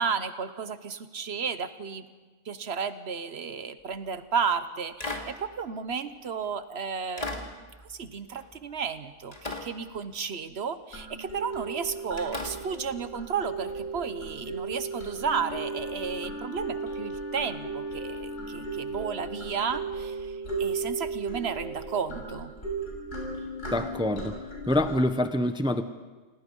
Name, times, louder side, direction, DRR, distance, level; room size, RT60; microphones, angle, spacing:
voice 1, 0.0-2.1 2.5-7.4 7.8-22.5, right 6 dB, 60° right, 11 dB, 1.2 m, -33 dB
sound 1, 3.9-4.3 5.0-6.5 7.2-9.0 9.3-10.5 11.2-11.5 12.2-14.0 15.4-15.5, left 2 dB, 30° left, 2.5 m, -40 dB
sound 2, 10.9-25.0, right 3 dB, 90° left, 6.7 m, -36 dB
Wind instrument woodwind instrument, 15.2-19.9, left 3 dB, 50° left, 3.6 m, -41 dB
voice 2, 23.7-24.3 24.7-25.8, left 1 dB, 5° right, 9 dB, 0.8 m, -25 dB
27.5 x 18.0 x 5.4 m, 1.3 s
omnidirectional pair, 1.2 m